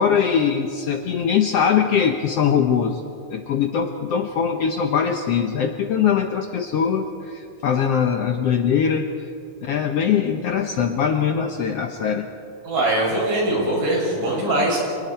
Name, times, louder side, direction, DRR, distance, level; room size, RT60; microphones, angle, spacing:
voice 1, 0.0-3.0 3.3-9.1 9.6-12.3, left 7 dB, 70° left, 5 dB, 1.5 m, -21 dB
voice 2, 12.6-14.8, right 1 dB, 80° right, -3 dB, 8.1 m, -21 dB
30.0 x 25.5 x 4.5 m, 2.4 s
omnidirectional pair, 3.7 m